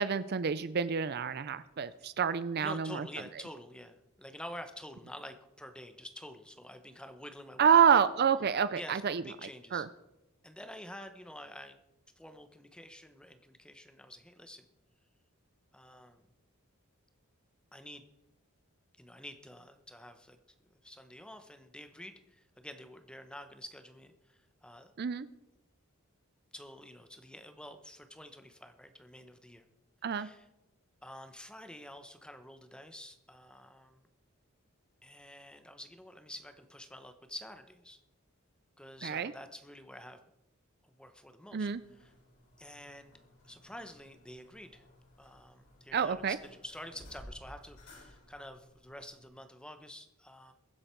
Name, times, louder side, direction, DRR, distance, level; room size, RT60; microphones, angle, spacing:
voice 1, 0.0-3.1 7.6-9.9 25.0-25.3 30.0-30.3 39.0-39.3 41.5-41.8 45.9-46.4, right 7 dB, 50° right, 15 dB, 0.4 m, -28 dB
voice 2, 2.6-8.0 8.7-9.8 10.4-11.8 12.2-14.7 15.7-16.3 17.7-18.0 19.0-20.4 20.8-24.9 26.5-29.7 30.1-30.5 31.0-34.1 35.0-38.0 38.8-40.2 40.8-41.7 42.0-42.1 42.6-43.1 43.4-44.8 45.2-50.5, left 1 dB, 5° left, 8 dB, 1.0 m, -48 dB
sound 1, 41.6-49.3, left 1 dB, 65° left, 6.6 m, -57 dB
22.5 x 7.9 x 4.6 m, 0.91 s
head